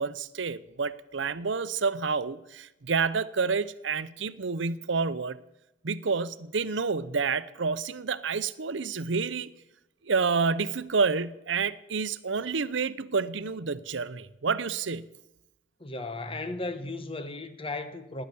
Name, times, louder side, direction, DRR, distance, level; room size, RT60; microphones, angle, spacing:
voice 1, 0.0-5.4 5.8-9.5 10.0-15.1, right 5 dB, 70° right, 0.7 m, -29 dB
voice 2, 15.8-18.2, left 2 dB, 30° left, 1.2 m, -35 dB
18.0 x 10.0 x 7.0 m
head